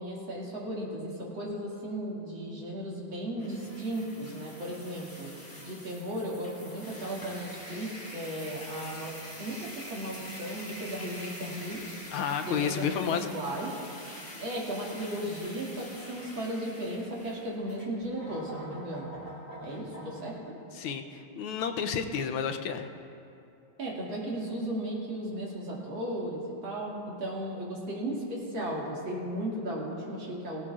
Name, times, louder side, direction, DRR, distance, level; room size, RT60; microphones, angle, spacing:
voice 1, 0.0-5.3 5.6-11.8 12.4-13.8 14.4-19.1 19.6-20.6 23.8-30.6, right 1 dB, 65° right, -4 dB, 3.0 m, -35 dB
sound 1, 3.4-20.4, left 1 dB, 10° left, 2.1 m, -45 dB
voice 2, 12.1-13.3 20.8-22.9, left 7 dB, 85° left, 6 dB, 1.5 m, -31 dB
18.0 x 16.5 x 2.4 m, 2.7 s
omnidirectional pair, 2.3 m